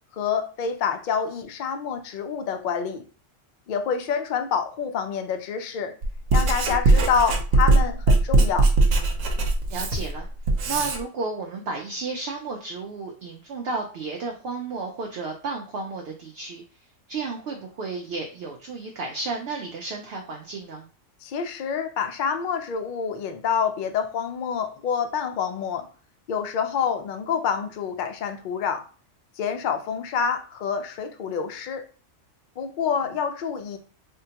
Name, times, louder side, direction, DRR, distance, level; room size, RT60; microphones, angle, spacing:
voice 1, 0.1-3.1 3.7-6.0 6.3-8.7 21.2-25.9 26.3-28.8 29.4-31.8 32.6-33.8, left 7 dB, 65° left, 7 dB, 0.5 m, -27 dB
Writing, 6.0-11.0, right 2 dB, 80° right, 1.0 m, -20 dB
voice 2, 9.7-10.3 10.7-16.6 17.1-20.9, right 3 dB, 65° right, 1 dB, 0.7 m, -32 dB
3.5 x 2.2 x 2.8 m, 0.38 s
omnidirectional pair, 1.3 m